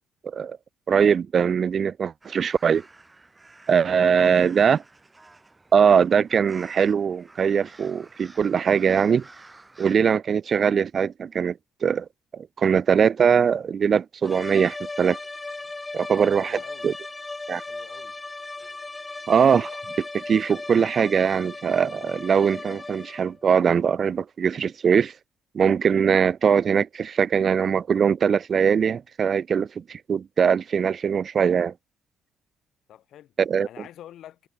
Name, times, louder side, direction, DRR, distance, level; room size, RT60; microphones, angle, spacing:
voice 1, 0.9-2.8 3.7-4.8 5.7-9.2 9.8-12.1 12.3-15.2 15.9-16.6 16.8-16.9 17.5-17.6 19.3-25.1 25.5-31.7 33.4-33.7, right 7 dB, 50° right, 0.6 m, -21 dB
sound 1, 2.2-10.0, right 2 dB, 20° right, 4.1 m, -50 dB
voice 2, 4.0-4.7 16.3-16.9 17.7-18.1 32.9-33.3 33.6-34.5, left 11 dB, 70° left, 4.0 m, -47 dB
sound 2, 14.2-23.4, left 3 dB, 20° left, 1.9 m, -37 dB
supercardioid pair, 75°, 0 cm